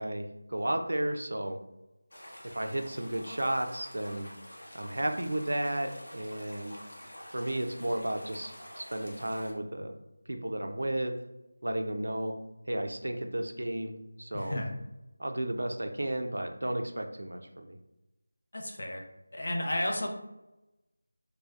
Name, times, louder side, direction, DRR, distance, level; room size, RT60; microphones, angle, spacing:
voice 1, 0.0-1.6 2.5-4.3 4.7-6.8 7.3-9.9 10.3-11.1 11.6-12.3 12.7-14.6 15.2-17.8, right 1 dB, 85° right, 5 dB, 0.4 m, -33 dB
sound 1, 2.1-9.5, equal, 70° left, 0.9 m, -48 dB
voice 2, 14.3-14.7 18.5-19.0 19.3-20.1, left 1 dB, 40° left, 1 dB, 0.5 m, -32 dB
3.0 x 2.7 x 2.4 m, 0.94 s
figure-of-eight pair, 180°, 0 cm